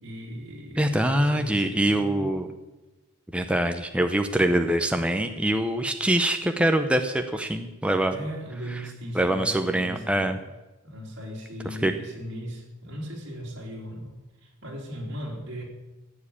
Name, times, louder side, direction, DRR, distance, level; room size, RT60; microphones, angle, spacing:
voice 1, 0.0-2.3 8.1-10.4 10.8-15.6, equal, 55° right, -2 dB, 3.8 m, -38 dB
voice 2, 0.8-2.5 3.3-8.1 9.1-10.4 11.8-11.9, right 1 dB, 5° right, 6 dB, 0.6 m, -24 dB
14.0 x 7.4 x 8.6 m, 1.1 s
head